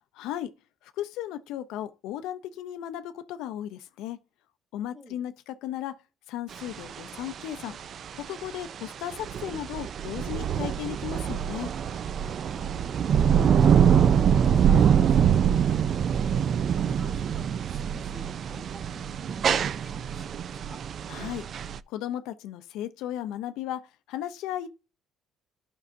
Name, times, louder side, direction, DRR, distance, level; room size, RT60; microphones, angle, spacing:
voice 1, 0.2-0.5 0.8-4.2 4.7-6.0 6.3-7.8 8.1-11.7 21.1-21.5 21.9-24.7, left 11 dB, 85° left, 0.5 m, -35 dB
voice 2, 4.9-5.3 12.3-13.1 13.6-15.6 16.3-20.8, equal, 15° right, 2.1 m, -49 dB
sound 1, 6.5-21.8, right 8 dB, 45° right, 0.3 m, -24 dB
11.5 x 5.4 x 2.6 m
cardioid pair, 130°, 0 cm